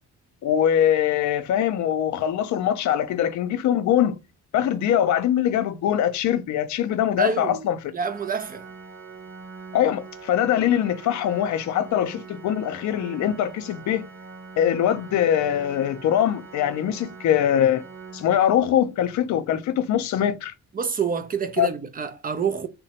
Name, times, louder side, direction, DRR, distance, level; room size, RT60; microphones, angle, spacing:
voice 1, 0.4-4.1 4.5-7.9 9.7-14.0 14.6-17.8 18.1-20.5 21.6-21.7, left 10 dB, 70° left, 0.5 m, -22 dB
voice 2, 7.2-7.7 7.9-8.6 20.7-22.7, right 6 dB, 30° right, 0.4 m, -27 dB
Organ, 8.1-18.9, right 4 dB, 70° right, 0.8 m, -43 dB
3.0 x 2.1 x 2.8 m
cardioid pair, 90°, 30 cm